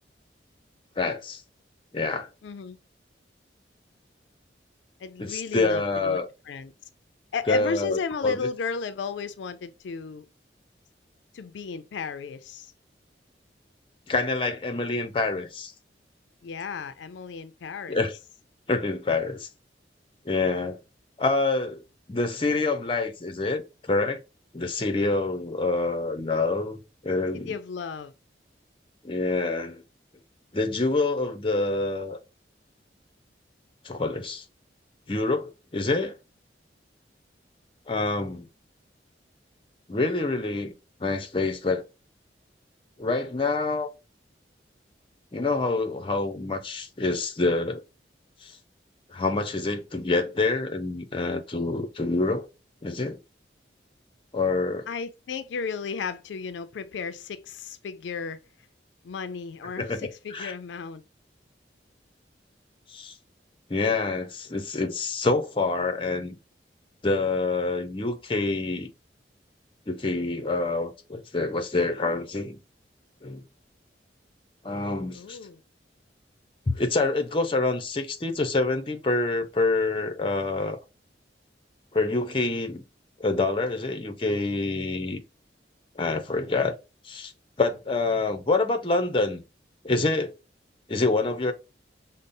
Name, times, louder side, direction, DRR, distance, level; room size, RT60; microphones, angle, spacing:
voice 1, 1.0-1.4 1.9-2.3 5.2-6.3 7.5-8.5 14.1-15.7 17.9-18.1 18.7-19.5 20.3-20.8 21.2-21.8 22.1-23.6 23.9-24.2 24.5-27.6 29.0-29.8 30.5-32.2 33.8-34.4 35.1-36.1 37.9-38.5 39.9-40.7 41.0-41.8 43.0-43.9 45.3-47.8 48.4-48.6 49.1-52.5 52.8-53.2 54.3-54.9 59.8-60.5 62.9-63.1 63.7-66.4 67.0-68.9 69.9-72.6 73.2-73.4 74.6-75.4 76.7-80.8 81.9-82.8 83.2-85.2 86.0-86.8 87.0-87.3 87.6-89.4 89.8-90.3 90.9-91.5, left 3 dB, 30° left, 0.6 m, -26 dB
voice 2, 2.4-2.8 5.0-6.2 6.5-6.7 7.3-10.3 11.3-12.7 16.4-18.0 27.3-28.1 54.9-58.4 59.0-61.0 75.1-75.6, left 5 dB, 85° left, 0.4 m, -34 dB
5.2 x 2.0 x 2.6 m
head